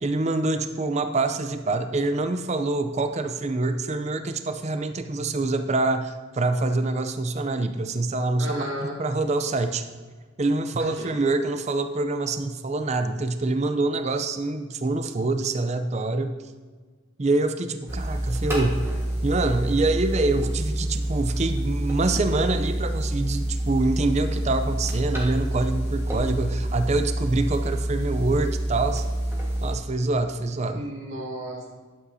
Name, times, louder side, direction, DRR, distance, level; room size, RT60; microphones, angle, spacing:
voice 1, 0.0-9.9 10.4-16.3 17.2-18.9 19.2-29.0 29.6-30.8, right 2 dB, 30° right, 8 dB, 0.5 m, -25 dB
voice 2, 8.4-9.0 10.8-11.1 30.7-31.7, right 1 dB, 65° right, -3 dB, 2.2 m, -34 dB
sound 1, 17.9-29.8, right 1 dB, 10° right, 1.4 m, -27 dB
11.0 x 8.2 x 2.7 m, 1.5 s
head